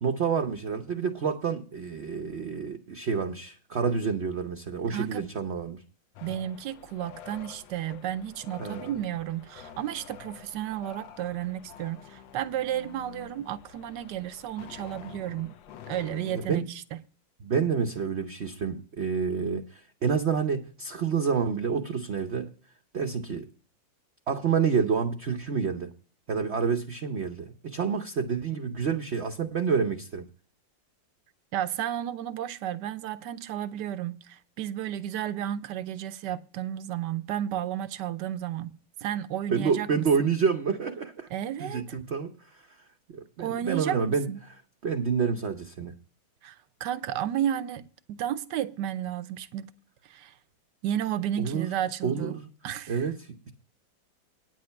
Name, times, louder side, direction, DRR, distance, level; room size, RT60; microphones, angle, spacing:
voice 1, 0.0-5.8 8.6-8.8 16.3-16.6 17.4-22.5 22.9-23.5 24.3-25.9 26.3-30.3 39.5-41.3 41.6-42.8 43.1-44.3 44.8-45.9 51.4-51.7 52.0-52.5 52.9-53.5, right 6 dB, 50° right, 0.8 m, -28 dB
voice 2, 4.9-5.3 6.2-15.5 15.9-16.8 31.5-40.3 41.3-41.8 43.4-44.4 46.4-47.8 48.1-49.7 50.1-50.3 50.8-52.3 52.6-53.1, right 11 dB, 70° right, 1.2 m, -32 dB
sound 1, 6.2-16.5, left 9 dB, 80° left, 1.5 m, -48 dB
9.5 x 7.5 x 5.8 m
omnidirectional pair, 2.1 m